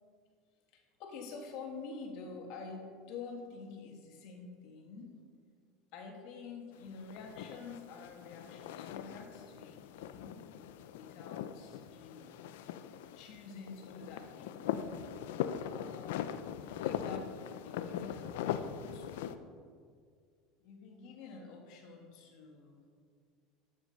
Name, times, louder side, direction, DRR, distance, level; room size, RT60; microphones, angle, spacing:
voice 1, 0.7-5.2 5.9-10.4 10.9-12.4 13.1-14.7 15.6-16.3 16.6-19.5 20.6-22.9, left 4 dB, 65° left, 2 dB, 2.1 m, -48 dB
sound 1, 6.8-19.4, left 9 dB, 85° left, 0.5 m, -41 dB
12.5 x 6.1 x 5.5 m, 2.1 s
supercardioid pair, 115°, 0 cm